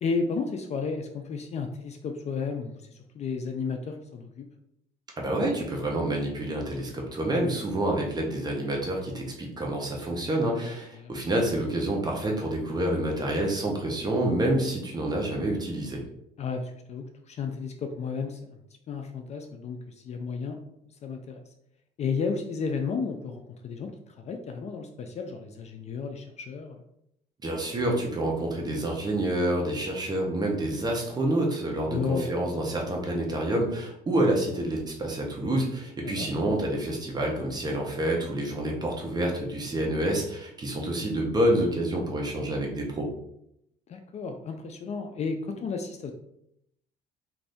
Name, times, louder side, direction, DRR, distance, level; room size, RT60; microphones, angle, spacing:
voice 1, 0.0-4.5 10.5-11.1 16.4-18.4 18.9-20.6 21.0-21.4 22.0-26.8 31.9-32.3 36.0-36.3 43.9-46.1, left 5 dB, 40° left, 5 dB, 0.4 m, -33 dB
voice 2, 5.2-16.0 27.4-43.1, right 1 dB, 25° right, -1 dB, 0.8 m, -28 dB
2.6 x 2.5 x 3.4 m, 0.77 s
cardioid pair, 110°, 17 cm